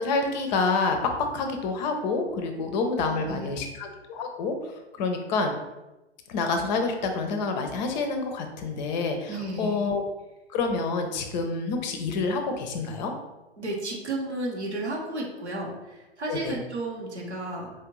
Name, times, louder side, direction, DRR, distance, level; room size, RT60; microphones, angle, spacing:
voice 1, 0.0-4.5 5.0-5.5 6.3-10.0 10.5-13.1 16.3-16.5, left 4 dB, 40° left, 5 dB, 0.6 m, -28 dB
voice 2, 3.0-3.6 9.3-9.9 13.6-17.7, right 1 dB, 90° right, -3 dB, 1.0 m, -33 dB
4.3 x 2.5 x 3.0 m, 1.0 s
figure-of-eight pair, 100°, 33 cm